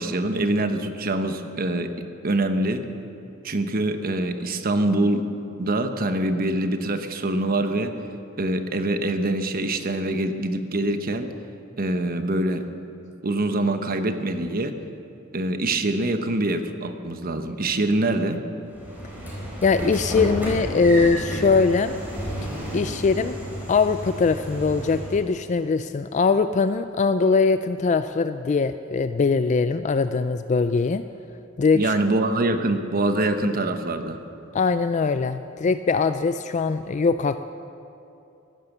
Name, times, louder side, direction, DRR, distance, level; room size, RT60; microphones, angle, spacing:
voice 1, 0.0-2.8 3.4-5.3 5.6-7.9 8.4-11.3 11.8-12.7 13.2-14.8 15.3-18.4 31.7-34.2, right 2 dB, 45° right, 7 dB, 1.0 m, -24 dB
Train / Sliding door, 18.7-25.3, right 1 dB, 10° right, 4.5 m, -32 dB
voice 2, 19.6-21.9 22.7-23.4 23.7-31.0 31.6-31.9 34.5-37.4, left 4 dB, 35° left, 11 dB, 0.3 m, -21 dB
15.5 x 12.0 x 7.2 m, 2.8 s
head